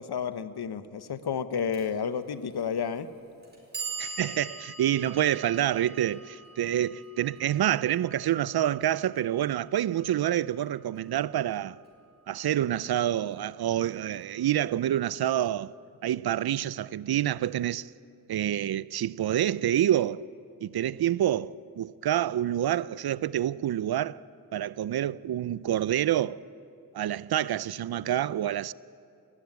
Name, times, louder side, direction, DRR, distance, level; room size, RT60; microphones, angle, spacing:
voice 1, 0.0-3.1, left 7 dB, 85° left, 0.9 m, -31 dB
Clock, 1.7-1.8 2.8-2.9 3.4-9.5, right 4 dB, 25° right, 6.1 m, -42 dB
voice 2, 4.0-11.8 12.3-15.7 16.0-17.9 18.3-20.2 20.6-24.2 24.5-26.4 26.9-28.7, right 11 dB, 75° right, 0.5 m, -27 dB
19.5 x 14.5 x 9.5 m
wide cardioid pair, 80°, 37 cm